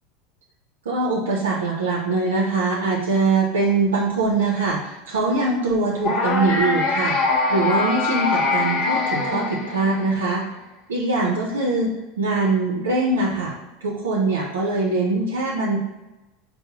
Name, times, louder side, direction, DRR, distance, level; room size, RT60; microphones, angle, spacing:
voice 1, 0.9-10.4 10.9-13.5 13.8-15.8, right 3 dB, 90° right, -2 dB, 0.5 m, -22 dB
sound 1, 6.0-10.2, left 3 dB, 50° left, 0.6 m, -23 dB
4.6 x 2.0 x 2.8 m, 1.0 s
hypercardioid pair, 95°, 0 cm